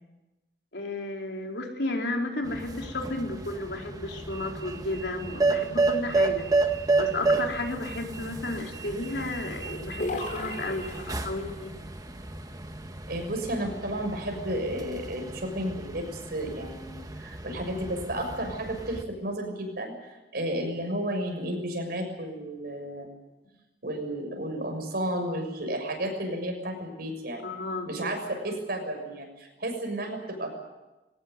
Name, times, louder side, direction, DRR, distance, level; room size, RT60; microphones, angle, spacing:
voice 1, 0.7-6.5 7.0-11.7 27.4-28.1, left 2 dB, 75° left, 2 dB, 4.1 m, -33 dB
sound 1, 2.4-19.0, right 3 dB, 20° right, 1.6 m, -31 dB
sound 2, 10.0-11.5, left 2 dB, 45° left, 4.6 m, -35 dB
voice 2, 13.1-23.1 23.8-27.4 27.9-30.5, right 1 dB, 60° right, 4 dB, 6.5 m, -32 dB
22.0 x 19.0 x 9.6 m, 1.1 s
head